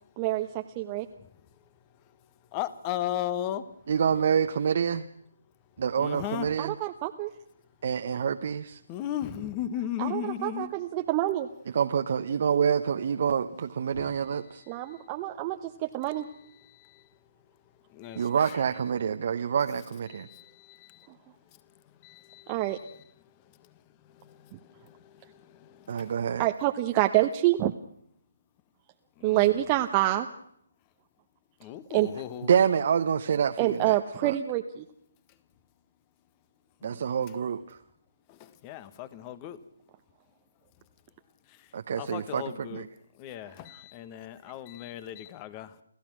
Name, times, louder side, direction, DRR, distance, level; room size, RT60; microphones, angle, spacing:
voice 1, 0.2-1.1 6.6-7.3 10.0-11.5 14.7-16.3 22.5-22.8 24.5-24.6 26.4-27.7 29.2-30.3 31.9-32.1 33.6-34.8, right 15 dB, 25° right, 0.9 m, -27 dB
voice 2, 2.5-3.7 6.0-6.6 8.9-10.7 13.9-15.1 16.0-16.2 16.6-17.2 17.9-18.6 20.1-26.4 29.2-29.4 31.6-32.5 36.8-37.3 38.3-39.6 41.5-42.9 43.1-45.8, left 11 dB, 25° left, 1.3 m, -38 dB
voice 3, 3.9-5.1 5.8-6.7 7.8-8.8 11.7-14.6 18.1-20.3 25.9-26.5 32.5-34.3 36.8-37.8 41.7-42.8, right 7 dB, 50° right, 1.0 m, -27 dB
29.5 x 15.0 x 6.2 m
figure-of-eight pair, 145°, 0 cm